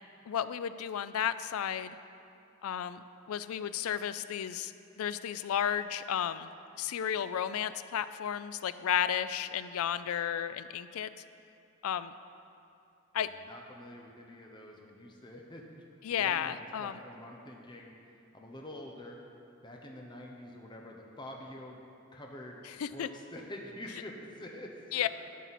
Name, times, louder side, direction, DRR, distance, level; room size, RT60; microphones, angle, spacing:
voice 1, 0.3-2.0 2.6-6.5 6.8-11.1 11.8-12.1 13.1-13.3 16.0-17.0 22.6-23.1 24.9-25.1, left 9 dB, 85° left, 13 dB, 0.4 m, -33 dB
voice 2, 13.4-15.8 16.1-18.0 18.3-19.2 19.6-21.8 22.1-22.6 22.9-25.1, left 1 dB, 20° left, 0 dB, 0.8 m, -46 dB
11.0 x 8.3 x 4.2 m, 2.6 s
head